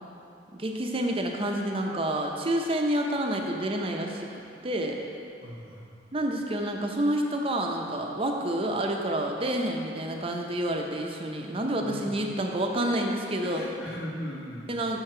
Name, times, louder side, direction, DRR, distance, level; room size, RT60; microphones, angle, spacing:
voice 1, 0.5-4.3 4.6-5.0 6.1-13.6 14.7-15.0, right 1 dB, 30° right, 2 dB, 0.6 m, -28 dB
voice 2, 5.4-5.8 11.8-12.1 12.8-13.1 13.4-14.7, equal, 55° left, -4 dB, 1.3 m, -38 dB
6.7 x 6.5 x 4.4 m, 2.5 s
head